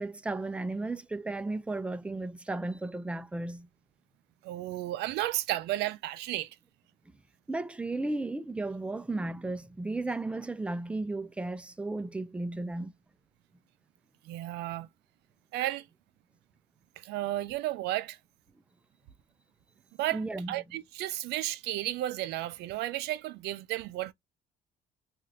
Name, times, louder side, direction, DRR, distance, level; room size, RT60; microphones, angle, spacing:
voice 1, 0.0-3.7 7.5-12.9 20.1-20.5, right 2 dB, 5° right, 0.3 m, -34 dB
voice 2, 4.4-6.6 14.2-14.9 15.5-15.9 17.0-18.2 20.0-24.1, right 15 dB, 80° right, 0.4 m, -33 dB
2.7 x 2.4 x 3.2 m
cardioid pair, 110°, 17 cm